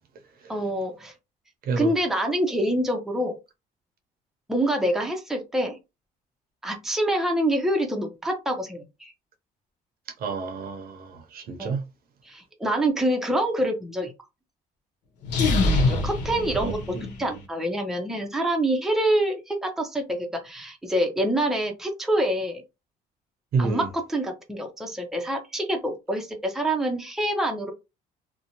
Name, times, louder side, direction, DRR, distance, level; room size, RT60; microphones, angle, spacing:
voice 1, 0.5-1.1 1.8-3.4 4.5-5.8 6.6-9.1 11.6-11.7 12.2-14.1 15.7-22.6 23.6-27.7, right 1 dB, ahead, 0.6 m, -26 dB
voice 2, 10.2-11.8 16.6-16.7 23.5-23.8, right 4 dB, 60° right, 0.7 m, -28 dB
sound 1, 15.2-17.4, left 2 dB, 85° left, 0.9 m, -24 dB
2.6 x 2.1 x 2.9 m
cardioid pair, 110°, 17 cm